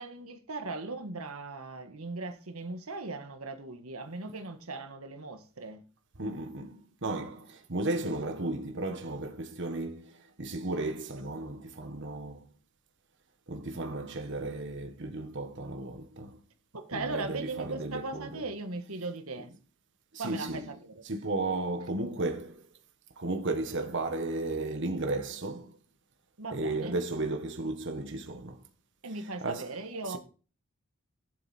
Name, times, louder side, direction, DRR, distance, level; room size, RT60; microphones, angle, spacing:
voice 1, 0.0-5.8 16.7-19.5 20.2-21.0 26.4-27.0 29.0-30.2, right 3 dB, 90° right, 1.5 m, -38 dB
voice 2, 6.2-12.5 13.5-16.4 16.9-18.4 20.1-20.6 21.0-22.7 23.2-25.8 26.5-28.6 29.4-29.7 30.1-30.2, right 2 dB, 60° right, 1.4 m, -34 dB
13.0 x 7.6 x 4.3 m
head